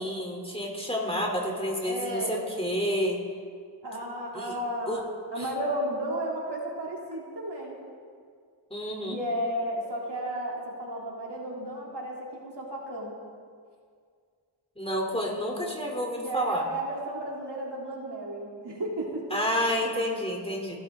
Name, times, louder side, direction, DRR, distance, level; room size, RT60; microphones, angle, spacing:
voice 1, 0.0-3.2 4.3-4.5 4.9-5.0 5.4-5.5 8.7-9.2 14.8-16.6 19.3-20.8, equal, 10° left, -1 dB, 3.5 m, -29 dB
voice 2, 1.9-2.4 3.8-5.0 5.3-7.8 9.1-13.2 16.2-19.4, right 1 dB, 60° right, -3 dB, 3.4 m, -33 dB
27.5 x 12.0 x 3.8 m, 2.1 s
cardioid pair, 60°, 46 cm